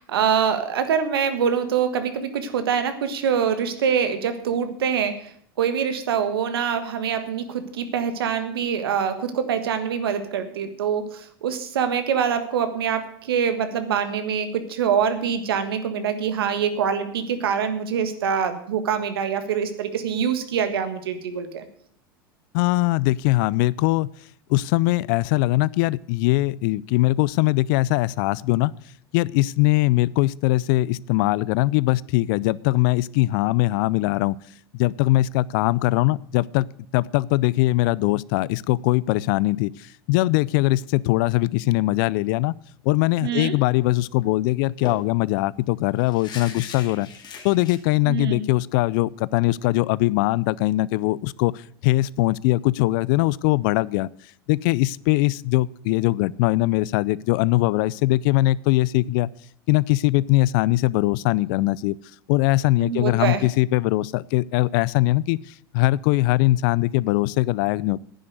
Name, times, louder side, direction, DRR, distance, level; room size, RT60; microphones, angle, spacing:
voice 1, 0.0-21.6 43.2-43.5 48.0-48.4 62.8-63.4, right 7 dB, 85° right, 9 dB, 1.5 m, -24 dB
voice 2, 22.5-24.1 24.5-28.7 29.1-34.4 34.7-36.7 36.9-42.5 42.8-47.1 47.4-54.1 54.5-59.3 59.7-62.0 62.3-65.4 65.7-68.0, left 19 dB, 65° left, 23 dB, 0.4 m, -21 dB
sound 1, 43.7-43.9 44.2-44.3 44.9-47.8, left 6 dB, 35° left, 2.2 m, -40 dB
10.0 x 7.7 x 8.0 m, 0.62 s
hypercardioid pair, 100°, 12 cm